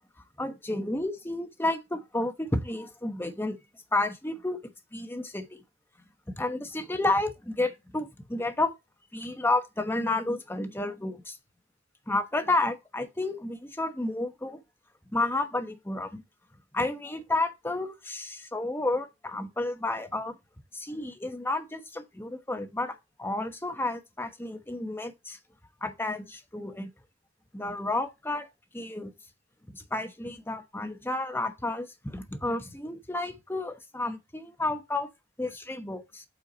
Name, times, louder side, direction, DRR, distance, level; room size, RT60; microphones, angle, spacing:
voice 1, 0.4-3.6 3.9-5.6 6.3-8.7 9.1-11.4 12.1-14.6 15.1-16.2 16.7-20.3 20.7-25.4 25.8-26.9 27.5-28.5 28.7-29.1 29.7-35.1 35.4-36.2, left 2 dB, 10° left, 1.0 m, -31 dB
8.5 x 4.5 x 4.0 m
head